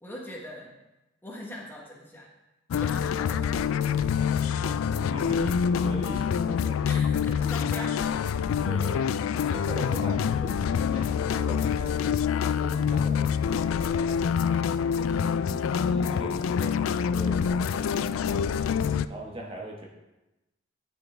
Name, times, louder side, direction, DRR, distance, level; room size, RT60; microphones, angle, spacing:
voice 1, 0.0-0.7 1.2-2.3 2.7-3.7 6.9-8.2 14.5-14.7, equal, 10° left, -2 dB, 1.1 m, -41 dB
sound 1, 2.7-19.1, left 7 dB, 90° left, 0.3 m, -26 dB
voice 2, 4.4-6.8 8.6-9.1 9.4-11.1 11.4-12.2 12.6-14.1 15.0-18.7 19.1-19.9, right 1 dB, 30° right, -1 dB, 1.2 m, -41 dB
9.7 x 6.1 x 3.3 m, 1.0 s
head